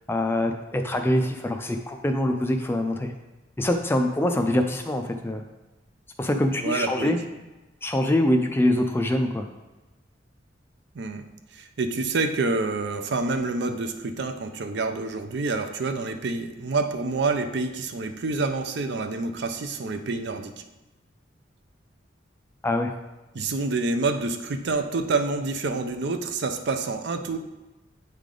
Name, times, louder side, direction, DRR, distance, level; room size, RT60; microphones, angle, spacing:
voice 1, 0.1-3.1 3.6-5.4 6.2-7.2 7.8-9.5 22.6-22.9, left 1 dB, 15° left, 4 dB, 0.4 m, -24 dB
voice 2, 6.6-7.2 8.7-8.9 10.9-20.5 23.3-27.4, right 3 dB, 65° right, 7 dB, 0.5 m, -27 dB
8.4 x 3.4 x 3.7 m, 1.1 s
head